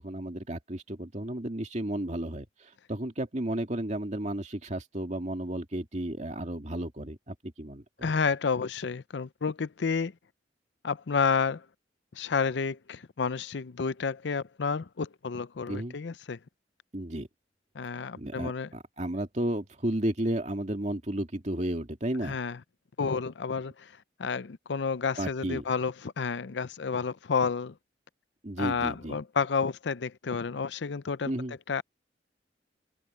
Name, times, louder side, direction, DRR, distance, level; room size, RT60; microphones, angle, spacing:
voice 1, 0.0-8.1 15.7-16.0 16.9-17.3 18.2-22.4 25.2-25.6 28.4-29.2 31.3-31.6, right 1 dB, 40° right, 2.3 m, -33 dB
voice 2, 8.0-10.1 10.8-11.6 12.1-16.4 17.8-18.7 22.2-22.6 23.0-23.9 24.2-27.7 28.6-31.3 31.7-31.8, left 5 dB, 75° left, 0.6 m, -30 dB
head